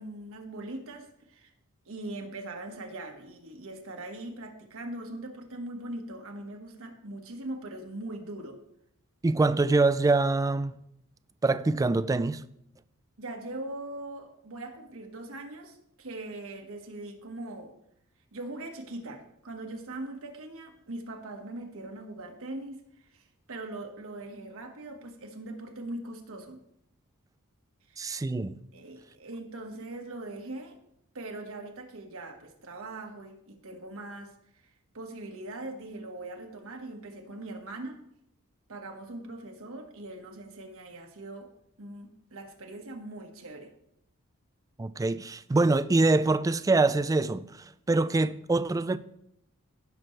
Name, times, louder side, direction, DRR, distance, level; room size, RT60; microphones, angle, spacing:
voice 1, 0.0-1.5 1.8-8.6 13.2-17.7 18.3-26.6 27.9-28.0 28.7-30.8 31.1-38.0 38.7-41.5 41.8-43.7, right 2 dB, 65° right, 1.4 m, -41 dB
voice 2, 9.2-10.8 11.4-12.4 28.0-28.6 44.8-49.0, right 3 dB, 15° right, 0.3 m, -25 dB
16.5 x 6.1 x 3.2 m
head